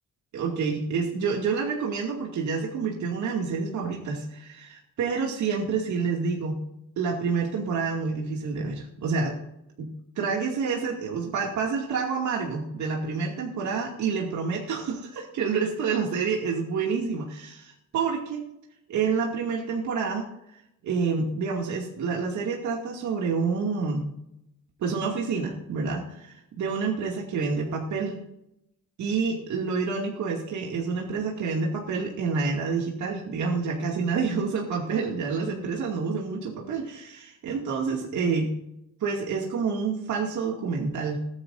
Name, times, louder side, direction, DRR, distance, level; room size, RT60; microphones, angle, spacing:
voice 1, 0.3-6.6 7.0-9.3 9.8-9.9 10.2-18.4 18.9-24.1 24.8-28.2 29.0-38.5 39.0-41.2, right 5 dB, 70° right, -1 dB, 2.3 m, -28 dB
20.5 x 9.7 x 2.6 m, 0.82 s
cardioid pair, 90°, 30 cm